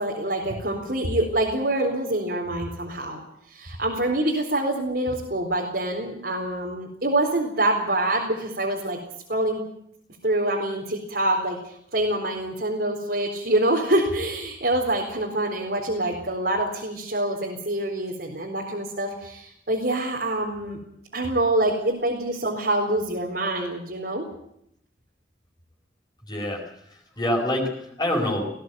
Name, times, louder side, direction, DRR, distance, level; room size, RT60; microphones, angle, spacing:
voice 1, 0.0-3.2 3.5-9.0 9.3-9.6 10.2-20.8 21.1-24.2, right 1 dB, 60° right, -2 dB, 4.3 m, -25 dB
voice 2, 26.2-28.5, left 1 dB, 25° left, 0 dB, 5.0 m, -27 dB
20.0 x 16.5 x 9.4 m, 0.73 s
head